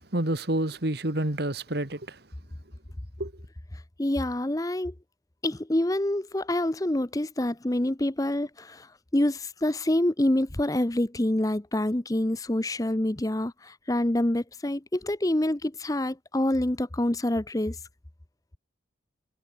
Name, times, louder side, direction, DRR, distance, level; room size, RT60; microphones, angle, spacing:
voice 1, 0.1-2.2 3.2-3.3, right 1 dB, 55° right, 2.0 m, -28 dB
voice 2, 4.0-4.9 5.4-8.9 9.1-17.8, left 1 dB, 15° left, 0.7 m, -26 dB
head